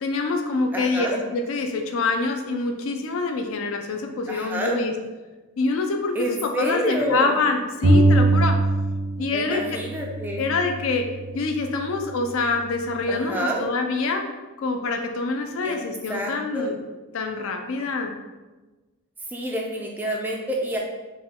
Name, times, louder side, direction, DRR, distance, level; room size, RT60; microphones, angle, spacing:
voice 1, 0.0-4.9 5.6-8.6 9.2-9.8 10.4-11.1 11.3-14.3 14.6-16.8 17.1-18.1, left 3 dB, 70° left, 5 dB, 0.4 m, -26 dB
voice 2, 0.7-1.2 4.3-4.8 6.1-7.4 9.3-10.5 13.1-13.6 15.6-15.8 16.1-16.7 19.3-20.8, equal, 10° right, -1 dB, 0.3 m, -28 dB
sound 1, 7.8-9.3 9.6-11.4, right 2 dB, 55° right, 0.5 m, -21 dB
4.2 x 2.2 x 3.6 m, 1.2 s
head